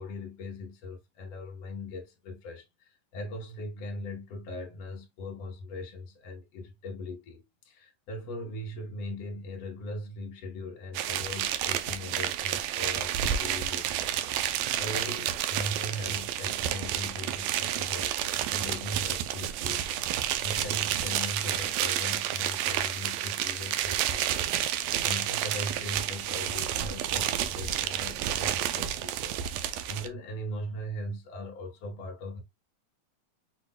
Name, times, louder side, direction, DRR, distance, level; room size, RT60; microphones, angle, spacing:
voice 1, 0.0-32.4, left 1 dB, 60° left, 1.9 m, -40 dB
sound 1, 10.9-30.1, right 11 dB, 80° right, 1.6 m, -30 dB
6.1 x 3.6 x 2.2 m
omnidirectional pair, 3.8 m